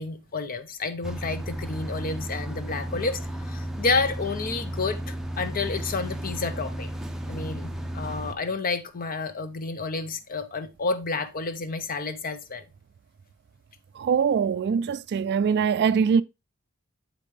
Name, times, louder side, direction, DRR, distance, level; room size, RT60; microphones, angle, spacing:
voice 1, 0.0-3.2 3.5-6.9 7.3-12.6, left 3 dB, 40° left, 0.7 m, -30 dB
sound 1, 1.0-8.3, equal, ahead, 0.6 m, -34 dB
voice 2, 14.0-16.2, right 6 dB, 50° right, 0.3 m, -23 dB
7.4 x 5.2 x 3.2 m
head